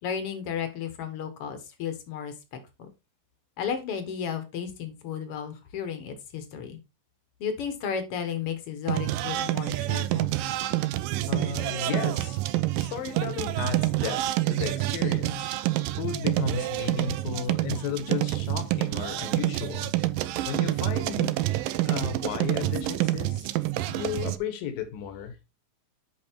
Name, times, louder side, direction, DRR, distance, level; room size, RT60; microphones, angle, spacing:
voice 1, 0.0-2.9 3.6-6.8 7.4-10.4, left 7 dB, 55° left, 1.8 m, -33 dB
sound 1, 8.9-24.4, right 16 dB, 85° right, 2.3 m, -27 dB
voice 2, 11.3-12.4 12.8-15.5 16.0-19.9 20.5-21.3 21.9-23.5 23.9-25.4, left 8 dB, 80° left, 3.0 m, -34 dB
8.5 x 5.4 x 4.5 m
omnidirectional pair, 4.0 m